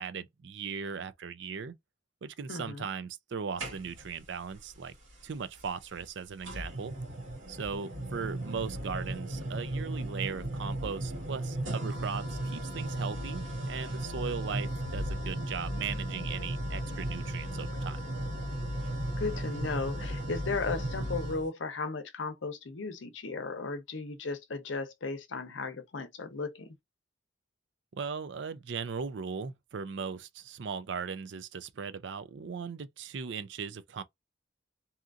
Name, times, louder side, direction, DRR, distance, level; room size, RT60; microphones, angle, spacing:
voice 1, 0.0-1.7 2.2-4.9 5.2-7.0 7.5-18.0 27.9-34.0, right 6 dB, 70° right, 0.4 m, -38 dB
voice 2, 2.5-2.9 19.2-26.8, left 4 dB, 75° left, 0.7 m, -36 dB
sound 1, 3.6-4.2 5.6-5.7 6.4-21.5, right 1 dB, 85° right, 1.5 m, -35 dB
2.8 x 2.5 x 2.3 m
head